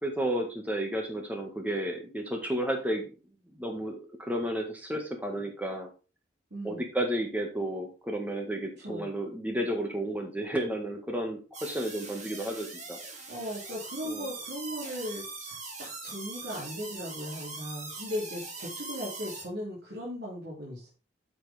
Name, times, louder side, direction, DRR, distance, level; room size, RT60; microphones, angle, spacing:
voice 1, 0.0-3.1 3.5-3.9 4.2-5.9 6.6-13.0 14.0-14.3, right 1 dB, 10° right, 2 dB, 1.7 m, -32 dB
voice 2, 6.5-6.8 8.8-9.1 13.3-20.9, equal, 65° right, -5 dB, 2.8 m, -38 dB
sound 1, 11.5-19.4, right 3 dB, 40° right, 2.7 m, -41 dB
9.3 x 5.9 x 3.5 m, 0.32 s
head